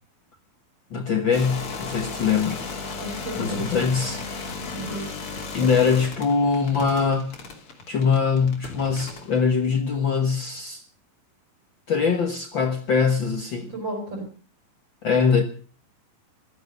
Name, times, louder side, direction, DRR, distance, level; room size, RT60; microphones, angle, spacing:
voice 1, 0.9-2.6 3.4-4.2 5.5-7.3 7.9-10.8 11.9-13.7 15.0-15.4, left 5 dB, 85° left, 5 dB, 1.0 m, -22 dB
sound 1, 1.3-9.4, left 4 dB, 40° left, 3.3 m, -35 dB
voice 2, 3.0-3.6 4.7-5.1 5.6-5.7 13.7-14.3, right 1 dB, 30° right, 4 dB, 6.2 m, -33 dB
15.0 x 14.0 x 6.6 m, 0.41 s
omnidirectional pair, 4.4 m